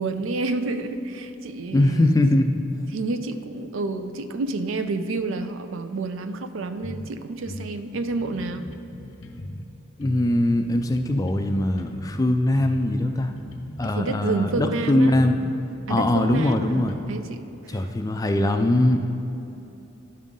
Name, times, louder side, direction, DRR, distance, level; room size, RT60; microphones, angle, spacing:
voice 1, 0.0-2.1 2.9-8.7 13.8-15.2 15.9-17.8, right 3 dB, 70° right, 10 dB, 0.4 m, -29 dB
voice 2, 1.7-2.6 10.0-13.3 13.8-15.5 15.9-17.0 17.7-19.1, left 1 dB, 15° left, 6 dB, 0.3 m, -21 dB
sound 1, 6.8-7.1 7.4-9.7 10.0-12.2 12.6-14.8 15.1-17.0, left 1 dB, 80° left, 0.7 m, -39 dB
11.5 x 5.4 x 3.7 m, 3.0 s
head